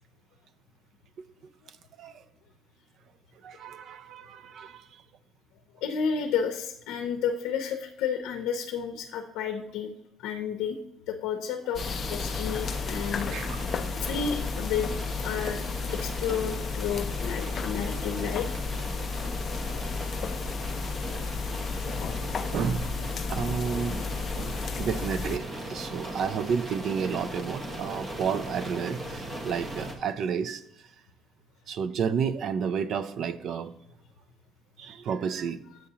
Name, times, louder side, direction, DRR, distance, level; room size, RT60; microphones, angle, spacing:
voice 1, 3.4-5.0 13.3-13.6 22.5-24.0 24.3-30.6 31.7-33.7 34.8-35.6, right 6 dB, 45° right, 0.3 m, -31 dB
voice 2, 5.7-9.9 10.2-10.8 11.1-11.8 12.1-14.9 15.2-15.6 15.9-18.5 21.5-21.7, left 7 dB, 80° left, 0.6 m, -31 dB
sound 1, 11.7-25.4, left 5 dB, 30° left, 0.3 m, -33 dB
sound 2, 11.8-29.9, right 1 dB, 20° right, 0.8 m, -38 dB
7.5 x 6.8 x 2.8 m
cardioid pair, 180°, 0 cm